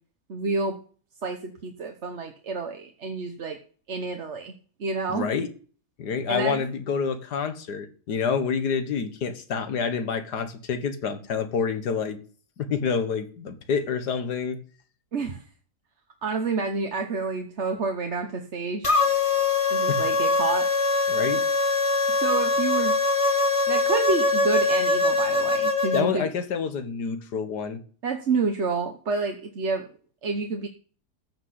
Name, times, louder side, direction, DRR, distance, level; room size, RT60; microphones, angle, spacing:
voice 1, 0.3-0.8 1.2-3.6 3.9-4.5 4.8-5.3 6.3-6.6 15.1-15.5 16.2-18.9 19.7-20.7 22.2-23.0 23.7-26.3 28.0-29.8 30.2-30.7, right 4 dB, 50° right, 1.3 m, -29 dB
voice 2, 5.1-5.5 6.0-12.2 12.6-14.6 19.9-20.0 21.1-21.4 25.9-27.8, left 6 dB, 90° left, 2.0 m, -28 dB
sound 1, 18.8-26.0, left 3 dB, 20° left, 1.3 m, -22 dB
14.0 x 6.3 x 7.9 m
omnidirectional pair, 1.7 m